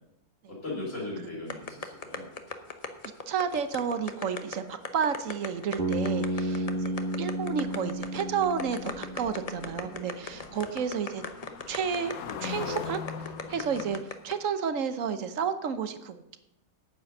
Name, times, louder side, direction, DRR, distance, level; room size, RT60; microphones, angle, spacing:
voice 1, 0.5-2.3 6.4-6.7 9.4-10.6 13.4-13.6, left 2 dB, 55° left, -8 dB, 3.7 m, -40 dB
sound 1, 1.5-14.3, left 4 dB, 30° left, 0.8 m, -37 dB
voice 2, 3.3-11.2 11.7-12.1 12.4-14.0 14.2-16.4, right 7 dB, 65° right, 10 dB, 1.2 m, -31 dB
Bass guitar, 5.8-9.9, right 1 dB, 40° right, 1.7 m, -32 dB
sound 2, 7.5-14.0, left 7 dB, 75° left, 1.2 m, -42 dB
9.3 x 8.4 x 6.6 m, 0.86 s
omnidirectional pair, 1.5 m